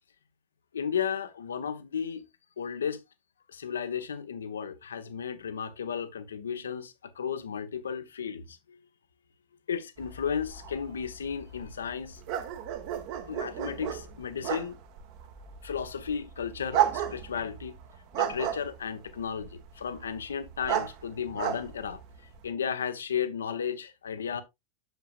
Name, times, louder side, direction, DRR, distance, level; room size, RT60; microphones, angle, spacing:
voice 1, 0.7-2.3 2.6-3.0 3.5-8.8 9.7-12.2 13.3-14.8 15.6-17.8 18.2-22.0 22.4-24.4, left 7 dB, 70° left, 1.0 m, -34 dB
sound 1, 10.0-22.5, right 10 dB, 45° right, 1.3 m, -34 dB
9.2 x 7.0 x 2.4 m
figure-of-eight pair, 90°, 0 cm